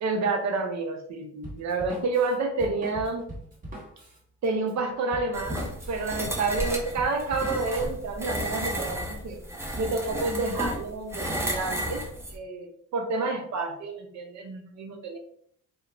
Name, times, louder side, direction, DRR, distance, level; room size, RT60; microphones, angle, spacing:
voice 1, 0.0-3.3 4.4-9.4 9.8-12.0 12.3-15.2, right 3 dB, 65° right, 4 dB, 0.6 m, -29 dB
Drum kit, 1.4-7.9, right 1 dB, 30° right, 1.1 m, -42 dB
sound 1, 5.3-12.4, equal, 10° right, 0.5 m, -33 dB
2.3 x 2.1 x 3.0 m, 0.64 s
cardioid pair, 90°, 30 cm